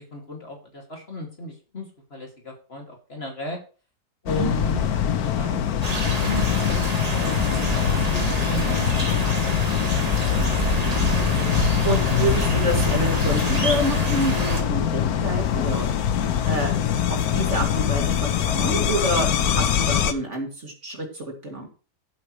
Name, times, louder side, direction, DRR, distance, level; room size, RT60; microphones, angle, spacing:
voice 1, 0.0-3.6 4.2-10.1, left 2 dB, 35° left, 0 dB, 2.6 m, -35 dB
sound 1, 4.3-20.1, left 9 dB, 65° left, 1.3 m, -23 dB
sound 2, 5.8-14.6, right 2 dB, 25° right, 1.6 m, -27 dB
voice 2, 11.1-15.9 16.5-16.7 17.1-21.7, right 1 dB, 45° right, 1 dB, 2.8 m, -28 dB
15.0 x 8.5 x 3.2 m, 0.37 s
omnidirectional pair, 1.8 m